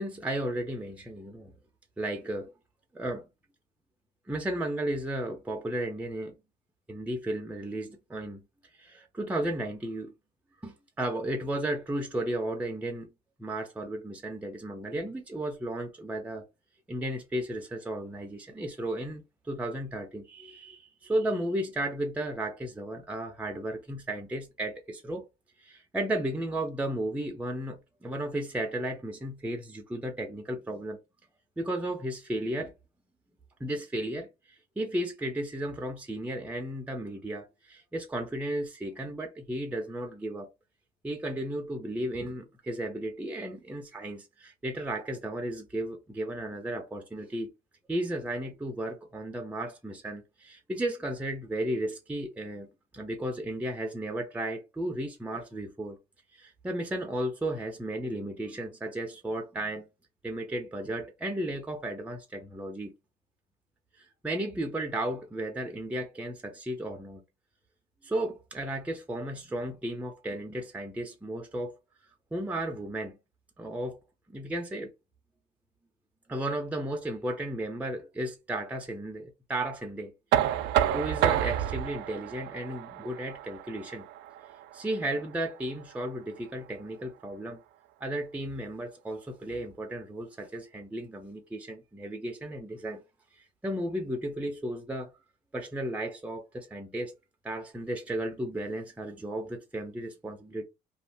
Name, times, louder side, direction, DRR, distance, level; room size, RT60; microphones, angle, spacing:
voice 1, 0.0-1.5 2.0-2.5 2.9-3.3 4.3-6.4 6.9-8.4 8.8-10.1 10.6-13.1 13.4-16.4 16.9-25.3 25.6-31.0 31.6-32.7 33.6-40.5 41.0-47.5 47.9-52.7 52.9-56.0 56.3-59.9 60.2-62.9 64.0-67.2 68.0-71.8 72.3-73.2 73.6-74.0 74.3-74.9 76.3-80.1 80.9-84.1 84.7-87.6 88.0-93.0 93.4-95.1 95.5-97.1 97.4-100.6, right 1 dB, 10° right, 0.6 m, -34 dB
Knock, 80.3-86.1, right 11 dB, 85° right, 0.4 m, -30 dB
2.6 x 2.3 x 3.4 m
cardioid pair, 110°, 17 cm